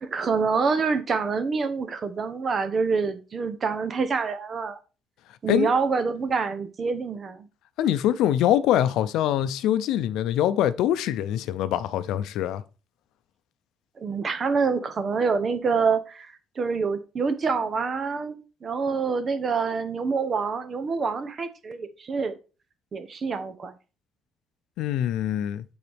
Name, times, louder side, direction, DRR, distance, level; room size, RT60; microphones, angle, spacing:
voice 1, 0.0-4.8 5.4-7.5 14.0-22.3 22.9-23.7, right 5 dB, 35° right, 0.8 m, -26 dB
voice 2, 7.8-12.6 24.8-25.6, left 11 dB, 90° left, 0.5 m, -24 dB
9.5 x 3.9 x 3.5 m
cardioid pair, 160°, 0 cm